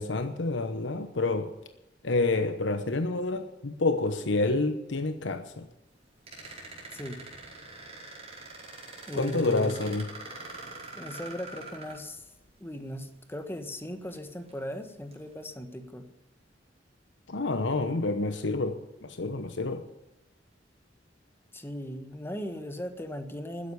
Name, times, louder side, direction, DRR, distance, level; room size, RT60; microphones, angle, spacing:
voice 1, 0.0-1.5 2.0-5.7 9.1-10.1 17.3-19.9, left 3 dB, 85° left, 9 dB, 1.0 m, -28 dB
sound 1, 6.3-12.5 13.4-13.5 14.0-14.6 15.1-15.3, right 3 dB, 35° right, 5.0 m, -44 dB
voice 2, 6.9-7.3 9.1-9.7 11.0-12.2 12.6-16.0 21.5-23.7, equal, 15° left, 7 dB, 1.4 m, -37 dB
13.5 x 10.0 x 8.3 m, 0.90 s
head